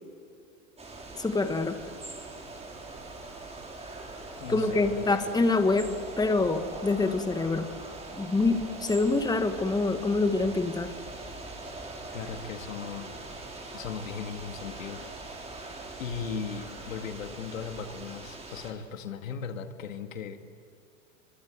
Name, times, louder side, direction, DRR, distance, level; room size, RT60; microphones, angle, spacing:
sound 1, 0.8-18.7, right 2 dB, 15° right, 5.5 m, -42 dB
voice 1, 1.2-1.8 4.5-5.9 6.2-7.7 8.1-10.9, left 3 dB, 10° left, 8 dB, 1.7 m, -26 dB
voice 2, 4.4-5.2 12.1-13.2 13.7-15.0 15.3-15.7 16.0-20.4, left 6 dB, 80° left, 7 dB, 2.2 m, -37 dB
26.5 x 24.5 x 8.1 m, 2.5 s
hypercardioid pair, 100°, 39 cm